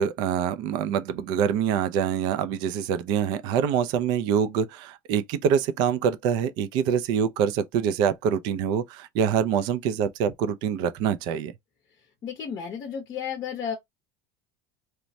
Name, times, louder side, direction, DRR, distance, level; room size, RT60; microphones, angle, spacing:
voice 1, 0.0-11.5, right 8 dB, 45° right, 0.3 m, -25 dB
voice 2, 12.2-13.7, left 7 dB, 25° left, 0.7 m, -32 dB
3.1 x 2.1 x 2.6 m
cardioid pair, 175°, 11 cm